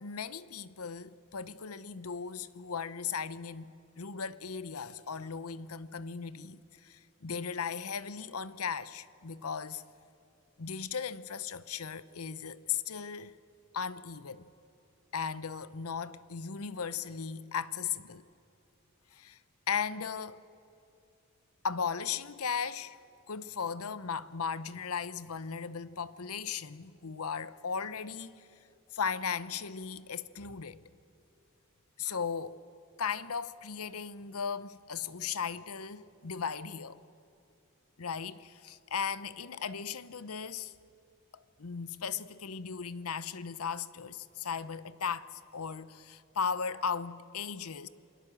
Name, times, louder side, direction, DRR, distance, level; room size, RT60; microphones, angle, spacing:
voice 1, 0.0-9.8 10.6-13.3 13.7-14.5 15.1-18.2 19.1-19.4 19.7-20.4 21.6-23.0 23.3-28.5 28.9-30.8 32.0-32.6 33.0-37.0 38.0-40.7 41.6-47.9, left 6 dB, 90° left, 0.9 m, -37 dB
28.5 x 21.0 x 7.7 m
head